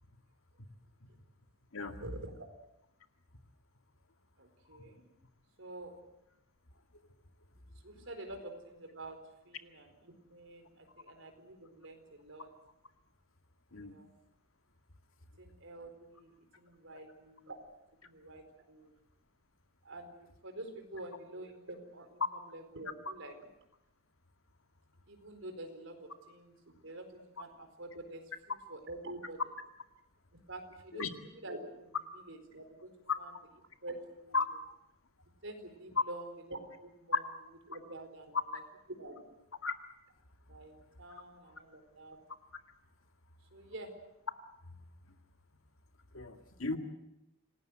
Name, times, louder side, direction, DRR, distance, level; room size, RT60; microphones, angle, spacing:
voice 1, 1.8-2.5 4.4-5.1 5.6-5.9 7.8-12.5 13.8-14.1 15.4-17.6 18.0-18.9 19.8-23.4 25.1-29.5 30.3-34.6 35.4-38.6 39.0-39.5 40.5-42.2 43.5-43.9, right 1 dB, 65° right, 6 dB, 4.5 m, -48 dB
voice 2, 46.1-46.8, left 4 dB, 80° left, 7 dB, 2.2 m, -34 dB
27.5 x 18.5 x 7.9 m, 0.87 s
head